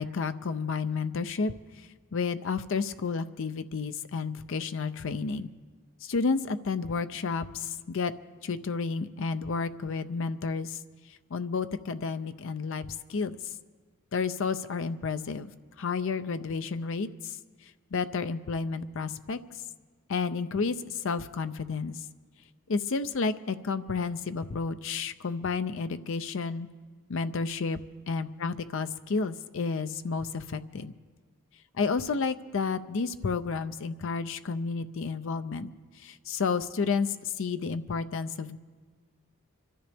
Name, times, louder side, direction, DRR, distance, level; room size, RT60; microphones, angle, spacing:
voice 1, 0.0-1.5 2.1-5.5 6.0-8.1 8.4-10.8 11.3-13.4 14.1-15.5 15.8-17.4 17.9-19.4 20.1-22.0 22.7-26.7 27.1-27.8 28.1-30.9 31.8-35.7 36.0-38.6, left 4 dB, 60° left, 11 dB, 0.5 m, -31 dB
25.0 x 13.0 x 3.5 m, 1.5 s
head